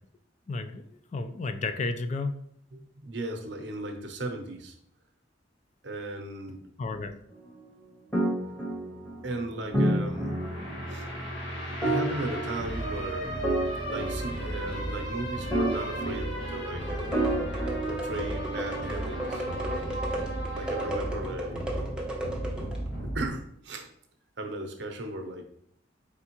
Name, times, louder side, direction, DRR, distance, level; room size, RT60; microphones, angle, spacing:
voice 1, 0.5-2.4 6.8-7.2, left 3 dB, 40° left, 9 dB, 0.3 m, -32 dB
voice 2, 2.7-4.8 5.8-6.6 9.2-10.4 10.9-11.1 11.8-13.5 13.9-17.2 17.9-19.4 20.5-21.9 23.0-23.9 24.4-25.4, right 1 dB, 65° right, 4 dB, 0.7 m, -36 dB
sound 1, 8.1-23.3, right 1 dB, 75° left, 1.5 m, -35 dB
sound 2, 8.1-9.3 9.7-10.9 11.8-13.0 13.4-14.8 15.5-16.7 17.1-18.5, right 1 dB, 15° left, 1.2 m, -30 dB
sound 3, 16.8-22.9, right 1 dB, 5° right, 0.7 m, -35 dB
4.3 x 3.5 x 2.9 m, 0.69 s
head